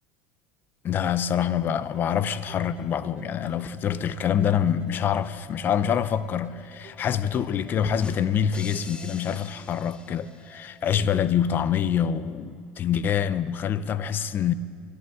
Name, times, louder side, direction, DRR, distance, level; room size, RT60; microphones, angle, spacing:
voice 1, 0.8-14.5, left 8 dB, 40° left, 0.6 m, -26 dB
sound 1, 1.9-10.6, right 3 dB, 30° right, 3.0 m, -52 dB
sound 2, 7.9-10.7, left 3 dB, 20° left, 1.0 m, -43 dB
23.5 x 11.5 x 3.6 m
supercardioid pair, 95°, 5 cm